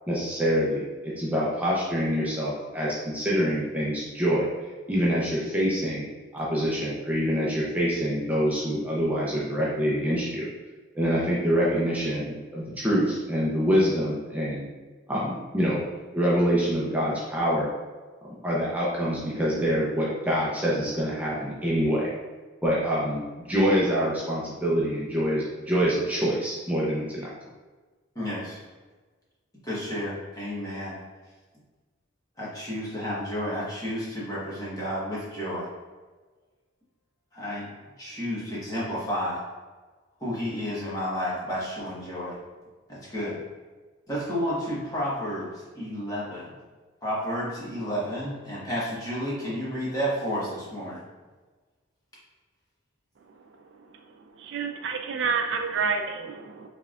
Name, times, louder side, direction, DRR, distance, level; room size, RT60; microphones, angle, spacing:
voice 1, 0.1-4.5 4.9-6.0 6.3-10.5 10.9-14.6 15.1-15.8 16.1-17.7 18.4-22.1 22.6-23.2 23.5-27.3, equal, 10° right, -7 dB, 0.7 m, -25 dB
voice 2, 28.1-28.6 29.6-31.0 32.4-35.7 37.3-37.7 38.0-39.4 40.2-42.3 42.9-43.4 44.1-46.5 47.0-51.0, equal, 20° left, -7 dB, 1.4 m, -31 dB
voice 3, 54.4-56.7, right 5 dB, 60° right, 4 dB, 0.4 m, -28 dB
5.5 x 3.5 x 2.5 m, 1.3 s
head